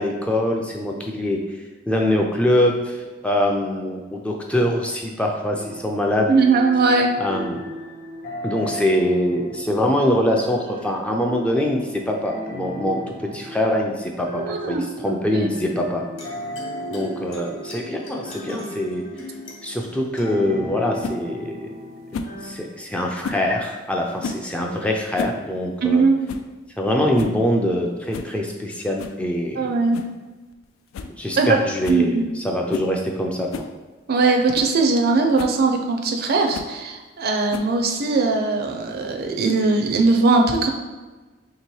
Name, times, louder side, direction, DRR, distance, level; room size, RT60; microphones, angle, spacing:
voice 1, 0.0-1.4 1.9-3.0 3.2-6.3 7.2-7.6 8.4-16.0 16.9-19.0 19.6-21.7 22.4-26.0 26.8-29.7 31.2-33.5, left 1 dB, 5° left, 0 dB, 0.3 m, -23 dB
sound 1, 5.5-22.6, right 1 dB, 40° left, 0.9 m, -36 dB
voice 2, 6.3-7.1 14.3-15.5 25.8-26.2 29.6-30.0 31.4-31.6 31.9-32.3 34.1-40.7, right 3 dB, 50° right, 3 dB, 0.5 m, -20 dB
sound 2, 15.6-22.6, left 2 dB, 70° left, 1.0 m, -39 dB
sound 3, 21.0-21.2 22.1-22.4 23.2-23.5 24.2-24.5 25.0-25.4 25.7-25.8 26.3-26.5 26.9-27.0 27.2-27.4 28.1-28.3 29.0-29.2 29.9-30.2 30.5-30.6 30.9-31.1 31.4-31.5 31.8-32.1 32.7-32.9 33.5-33.7 34.2-34.3 34.5-34.7 35.4-35.6 36.5-36.8 37.5-37.9, left 4 dB, 85° left, 0.3 m, -32 dB
3.0 x 2.9 x 4.5 m, 1.2 s
head